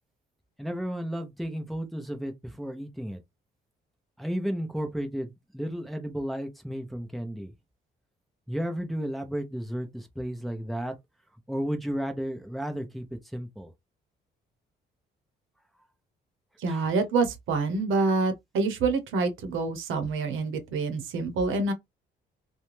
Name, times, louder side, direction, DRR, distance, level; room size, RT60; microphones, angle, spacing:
voice 1, 0.6-3.2 4.2-7.5 8.5-10.9 11.5-13.7 16.7-16.8, equal, ahead, 0.7 m, -33 dB
voice 2, 16.6-21.7, right 3 dB, 80° right, 0.8 m, -27 dB
2.4 x 2.2 x 3.1 m
cardioid pair, 90°, 20 cm